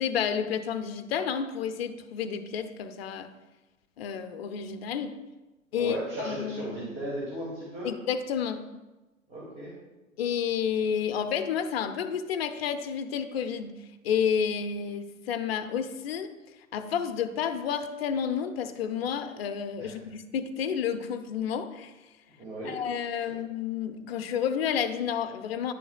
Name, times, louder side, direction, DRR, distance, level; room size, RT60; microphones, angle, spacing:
voice 1, 0.0-3.3 4.0-5.2 5.7-6.8 7.8-8.7 10.2-13.8 14.0-16.3 16.7-21.9 22.6-25.7, left 7 dB, 45° left, 9 dB, 0.7 m, -30 dB
voice 2, 5.7-7.9 9.3-9.7 19.8-19.9 22.4-22.8, right 1 dB, 15° right, -7 dB, 2.1 m, -36 dB
10.0 x 6.9 x 2.3 m, 1.1 s
figure-of-eight pair, 105°, 41 cm